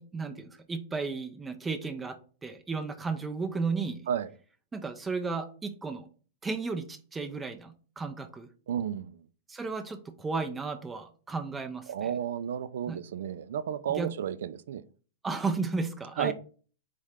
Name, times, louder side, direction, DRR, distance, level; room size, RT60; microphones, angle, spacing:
voice 1, 0.0-4.0 4.7-6.1 6.4-8.5 9.5-12.1 12.9-13.0 13.9-14.1 15.2-16.3, right 4 dB, 10° right, 0.5 m, -34 dB
voice 2, 8.7-9.2 11.9-14.8 16.2-16.3, right 9 dB, 75° right, 0.4 m, -32 dB
4.2 x 3.7 x 3.4 m
hypercardioid pair, 135°, 0 cm